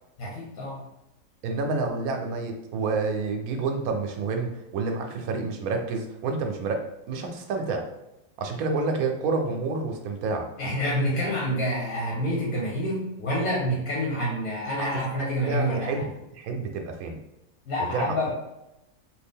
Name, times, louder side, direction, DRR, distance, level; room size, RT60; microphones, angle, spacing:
voice 1, 0.2-0.8 10.6-16.0 17.7-18.3, equal, 75° left, -5 dB, 1.5 m, -27 dB
voice 2, 1.4-7.9 8.4-10.5 14.8-14.9 15.2-17.2 17.9-18.3, right 4 dB, 90° right, 4 dB, 1.1 m, -29 dB
3.4 x 2.4 x 3.5 m, 0.89 s
omnidirectional pair, 1.5 m